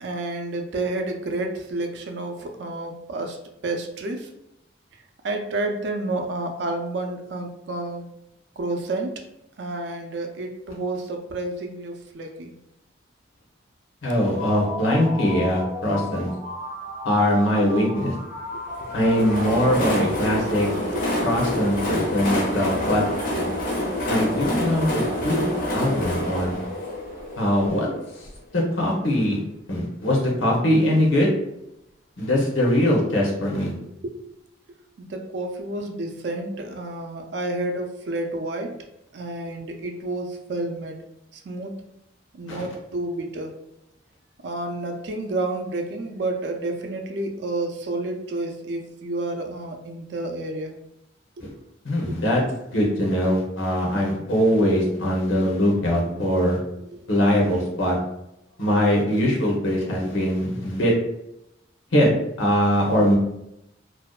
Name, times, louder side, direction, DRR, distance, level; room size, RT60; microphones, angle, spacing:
voice 1, 0.0-3.4 3.6-4.3 5.2-8.1 8.6-9.1 9.6-12.5 18.5-18.6 20.5-20.6 20.9-21.1 33.8-34.2 35.0-38.8 39.1-41.0 41.5-41.8 42.3-43.6 44.4-50.7 51.4-51.5 52.1-52.5 56.9-57.0, right 2 dB, 65° right, 4 dB, 0.4 m, -30 dB
voice 2, 14.0-16.3 17.0-18.1 18.9-20.7 21.2-23.0 24.1-25.4 25.7-26.6 27.4-27.9 28.5-29.4 29.7-31.3 32.2-33.7 42.5-42.6 51.4-51.5 51.8-52.4 52.7-56.6 57.1-58.0 58.6-60.9 61.9-62.1 62.4-63.2, equal, 90° left, -2 dB, 0.8 m, -21 dB
sound 1, 14.2-21.0, left 1 dB, 30° right, 0.7 m, -35 dB
Train, 18.7-28.3, left 1 dB, 45° left, 0.5 m, -27 dB
2.6 x 2.1 x 2.3 m, 0.83 s
head